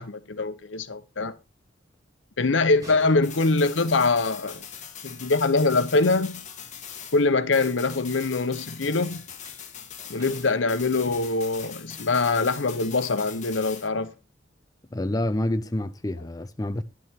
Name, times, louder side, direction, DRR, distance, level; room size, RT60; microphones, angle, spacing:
voice 1, 0.0-1.3 2.4-4.6 5.0-6.4 7.1-9.2 10.1-14.1, left 3 dB, 80° left, 0.9 m, -23 dB
sound 1, 2.7-5.3 9.0-12.8 13.2-13.5 14.0-14.1, left 1 dB, 20° right, 5.8 m, -50 dB
sound 2, 3.2-7.3 7.5-13.9, left 8 dB, 40° left, 1.7 m, -41 dB
voice 2, 14.9-16.8, left 1 dB, 20° left, 0.5 m, -28 dB
11.0 x 8.4 x 3.7 m
head